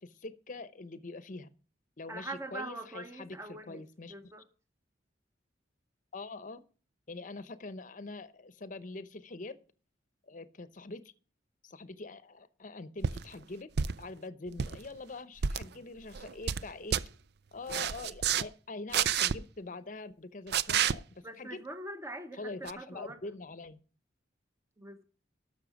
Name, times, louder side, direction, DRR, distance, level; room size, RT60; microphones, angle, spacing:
voice 1, 0.0-1.5 2.0-4.1 6.1-6.6 7.1-9.6 10.3-11.1 11.6-13.7 14.0-17.0 17.5-21.6 22.3-23.8, left 3 dB, 45° left, 14 dB, 0.8 m, -44 dB
voice 2, 2.1-3.8 4.1-4.4 21.2-23.2 24.8-25.0, right 2 dB, 15° right, 8 dB, 0.9 m, -43 dB
sound 1, 13.0-13.2 13.8-14.1 14.5-14.8 15.4-15.6 16.1-16.6 16.9-17.0 17.7-18.4 18.9-19.3 20.5-20.9 22.7-22.8, right 8 dB, 60° right, 0.5 m, -29 dB
12.0 x 6.5 x 6.3 m, 0.38 s
head